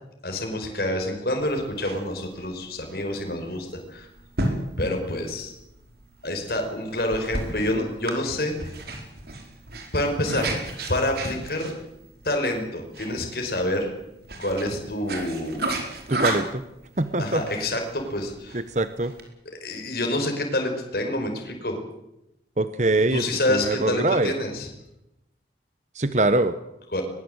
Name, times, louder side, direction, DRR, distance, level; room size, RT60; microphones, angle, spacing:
voice 1, 0.2-4.1 4.8-5.5 6.2-8.7 9.9-10.5 10.9-11.7 12.2-13.9 14.4-15.8 17.2-18.6 19.6-21.8 23.1-24.7 26.9-27.0, left 1 dB, 55° left, 3 dB, 5.2 m, -27 dB
sound 1, 1.4-19.3, right 2 dB, 60° right, 4.8 m, -34 dB
voice 2, 16.1-16.6 17.0-17.4 18.5-19.1 22.6-24.3 25.9-26.6, right 2 dB, 40° right, 11 dB, 1.0 m, -23 dB
22.0 x 22.0 x 8.1 m, 0.88 s
head